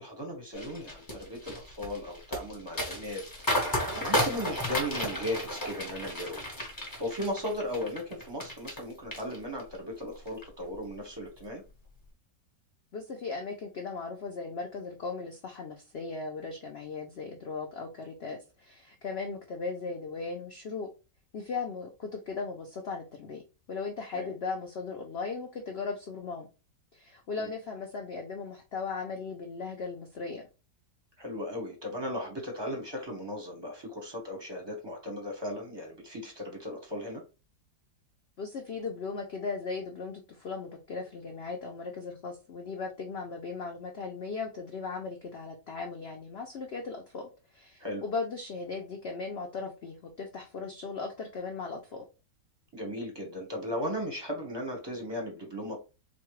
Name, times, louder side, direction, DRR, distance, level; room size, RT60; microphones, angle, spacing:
voice 1, 0.0-3.2 3.7-6.4 7.0-11.6 24.1-24.3 27.4-27.5 31.2-37.2 47.8-48.0 52.7-55.8, left 1 dB, 20° right, 1 dB, 0.7 m, -36 dB
sound 1, 0.5-8.8 9.1-9.8 10.2-10.4, left 1 dB, 20° left, 0.7 m, -33 dB
voice 2, 12.9-20.9 21.3-23.4 23.7-26.5 26.9-30.4 38.4-52.0, left 4 dB, 80° left, 2 dB, 0.5 m, -37 dB
4.1 x 2.2 x 3.0 m, 0.29 s
omnidirectional pair, 1.8 m